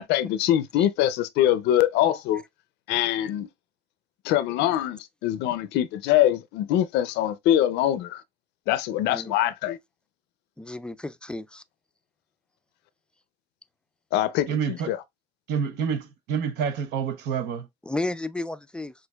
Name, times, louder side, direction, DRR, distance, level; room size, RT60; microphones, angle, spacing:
voice 1, 0.0-2.4 2.9-3.5 4.2-8.2 8.7-9.8 14.1-15.0, left 12 dB, 85° left, 0.5 m, -23 dB
voice 2, 10.6-11.6 17.9-18.9, left 2 dB, 5° left, 0.3 m, -32 dB
voice 3, 14.5-14.9 15.5-17.7, right 7 dB, 85° right, 0.7 m, -28 dB
6.4 x 2.5 x 2.3 m
cardioid pair, 110°, 17 cm